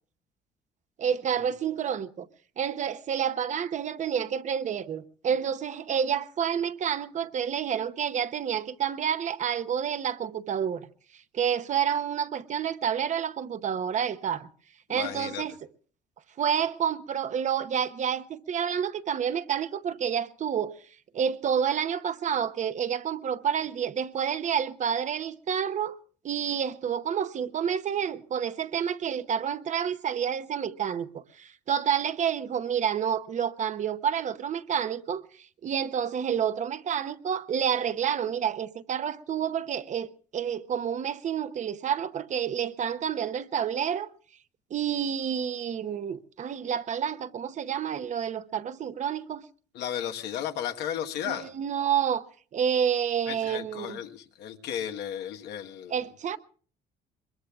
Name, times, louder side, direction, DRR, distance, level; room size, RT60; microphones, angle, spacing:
voice 1, 1.0-2.3 2.6-10.9 11.3-14.5 14.9-15.6 16.4-20.7 21.1-26.0 26.2-35.2 35.6-44.1 44.7-49.4 51.2-52.2 52.5-54.0 55.9-56.4, right 8 dB, 45° right, 0.8 m, -29 dB
voice 2, 14.9-15.4 49.7-51.5 53.3-56.0, left 10 dB, 80° left, 1.3 m, -34 dB
22.5 x 22.0 x 2.4 m
cardioid pair, 110°, 17 cm